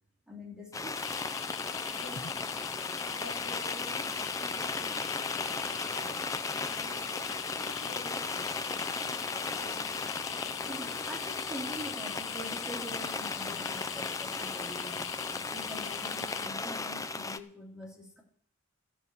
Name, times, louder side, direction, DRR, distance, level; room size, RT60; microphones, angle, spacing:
voice 1, 0.3-1.0 10.7-15.1 15.5-18.2, equal, 5° right, -3 dB, 2.7 m, -44 dB
sound 1, 0.7-17.4, left 3 dB, 15° left, 0.4 m, -36 dB
sound 2, 0.9-16.5, left 9 dB, 55° left, 0.9 m, -41 dB
voice 2, 1.9-2.7 3.0-10.9, left 2 dB, 75° left, -1 dB, 3.4 m, -50 dB
13.5 x 6.3 x 8.4 m, 0.62 s
head